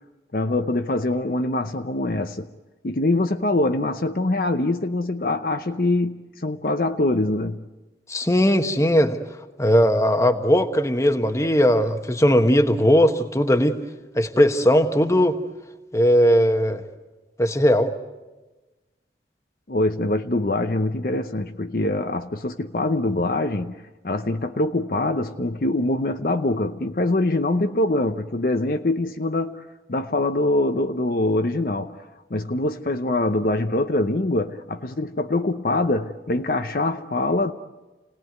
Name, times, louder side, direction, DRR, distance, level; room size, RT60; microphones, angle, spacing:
voice 1, 0.3-2.5 2.8-7.6 19.7-29.6 29.9-32.0 32.3-37.5, left 2 dB, 50° left, 0.7 m, -24 dB
voice 2, 8.1-9.2 9.6-13.8 14.2-15.4 15.9-16.8 17.4-17.9, equal, 15° left, 1.2 m, -18 dB
28.5 x 18.5 x 9.3 m
head